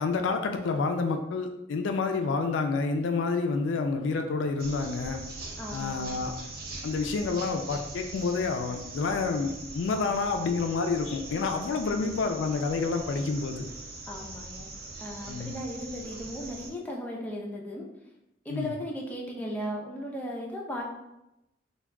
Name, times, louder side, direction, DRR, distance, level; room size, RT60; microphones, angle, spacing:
voice 1, 0.0-5.2 5.7-6.3 6.8-13.7 15.3-15.5 18.5-18.7, left 4 dB, 75° left, 5 dB, 0.3 m, -29 dB
sound 1, 4.6-16.7, right 2 dB, 55° right, 0.5 m, -42 dB
voice 2, 5.6-6.2 11.9-12.1 14.1-14.7 15.0-17.9 18.4-20.8, equal, 10° left, -2 dB, 0.4 m, -36 dB
2.2 x 2.2 x 3.5 m, 0.89 s
head